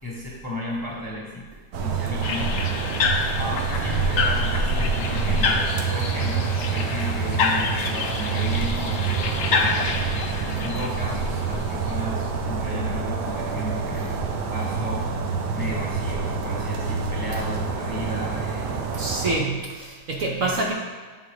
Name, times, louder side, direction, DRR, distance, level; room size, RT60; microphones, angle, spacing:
voice 1, 0.0-1.4 1.8-2.6 3.3-5.6 5.8-10.1 10.6-14.1 14.5-15.1 15.5-19.0 20.4-20.6, left 1 dB, 15° left, -5 dB, 0.9 m, -34 dB
sound 1, 1.7-19.4, right 5 dB, 80° right, 1.3 m, -27 dB
sound 2, 2.2-11.9, left 4 dB, 70° left, 0.7 m, -28 dB
voice 2, 19.0-20.7, right 2 dB, 60° right, -1 dB, 1.0 m, -26 dB
8.3 x 3.8 x 4.7 m, 1.4 s
omnidirectional pair, 1.8 m